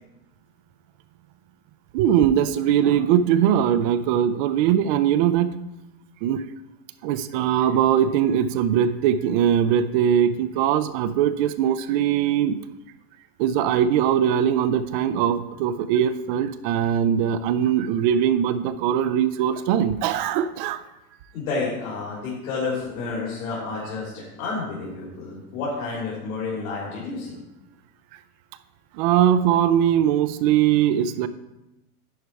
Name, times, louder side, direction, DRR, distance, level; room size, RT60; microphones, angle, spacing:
voice 1, 1.9-5.6 6.2-6.4 7.0-12.5 13.4-20.8 29.0-31.3, right 9 dB, 40° right, 13 dB, 0.4 m, -21 dB
voice 2, 21.3-27.4, left 4 dB, 65° left, -6 dB, 3.3 m, -30 dB
10.0 x 4.7 x 4.5 m, 0.94 s
hypercardioid pair, 125°, 45 cm